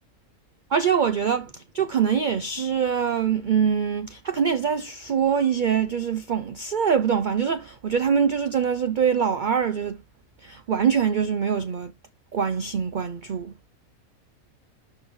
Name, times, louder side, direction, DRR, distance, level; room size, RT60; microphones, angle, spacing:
voice 1, 0.7-10.0 10.4-11.9 12.3-13.5, right 7 dB, 65° right, 0.4 m, -24 dB
11.5 x 4.1 x 3.2 m
omnidirectional pair, 1.5 m